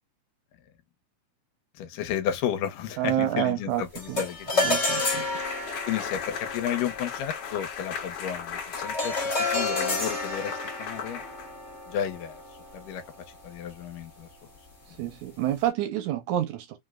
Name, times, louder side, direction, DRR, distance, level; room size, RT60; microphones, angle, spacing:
voice 1, 1.8-4.8 5.9-11.2 11.9-12.4 12.7-13.0 13.4-14.3, left 9 dB, 80° left, 2.2 m, -32 dB
voice 2, 3.0-3.8 4.1-4.2 4.6-5.3 15.0-16.8, right 12 dB, 80° right, 1.7 m, -28 dB
sound 1, 3.9-13.4, left 2 dB, 40° left, 0.9 m, -31 dB
sound 2, 5.0-11.8, left 7 dB, 60° left, 1.6 m, -37 dB
5.2 x 2.1 x 2.2 m
omnidirectional pair, 3.8 m